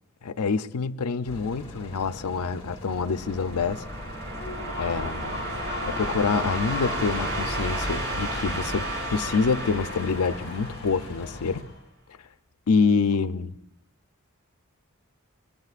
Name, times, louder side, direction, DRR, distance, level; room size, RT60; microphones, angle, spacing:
voice 1, 0.2-3.8 4.8-5.5 5.9-11.7 12.7-13.6, left 5 dB, 90° left, 0.6 m, -26 dB
sound 1, 1.3-11.6, left 1 dB, 25° left, 2.8 m, -42 dB
sound 2, 2.9-11.4, right 1 dB, 60° right, 4.9 m, -33 dB
Human voice / Cheering / Applause, 4.2-11.8, left 4 dB, 50° left, 5.4 m, -40 dB
25.5 x 22.0 x 2.5 m
head